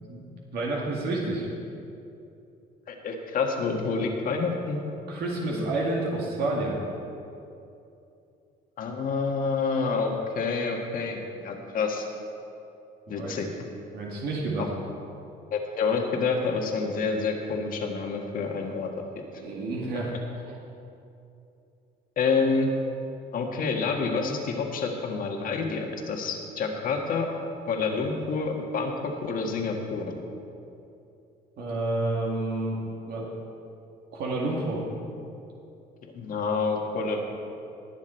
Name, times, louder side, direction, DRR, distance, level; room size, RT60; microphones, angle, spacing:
voice 1, 0.5-1.5 5.1-6.8 13.1-13.3 13.9-14.7 19.4-20.1 20.5-20.6 31.6-32.8 33.1-33.3 34.1-34.8, right 2 dB, 70° right, -3 dB, 2.0 m, -29 dB
voice 2, 2.9-4.8 5.5-5.7 8.8-12.1 13.1-13.5 14.6-14.7 15.5-18.9 19.2-19.3 22.2-22.7 23.3-27.3 27.7-30.0 36.1-37.2, left 4 dB, 55° left, 2 dB, 1.6 m, -28 dB
19.0 x 7.2 x 4.4 m, 2.7 s
cardioid pair, 110°, 17 cm